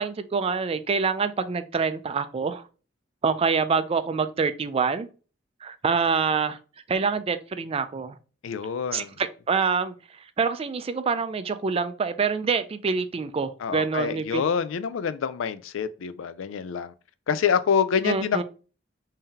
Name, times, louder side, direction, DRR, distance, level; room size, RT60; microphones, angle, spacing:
voice 1, 0.0-2.6 3.2-5.1 5.6-6.6 6.9-8.2 8.9-9.9 10.4-14.5 18.0-18.4, right 5 dB, 30° right, 0.3 m, -26 dB
voice 2, 8.4-9.1 13.6-16.9 17.3-18.4, left 7 dB, 85° left, 0.4 m, -26 dB
3.7 x 2.8 x 3.4 m
head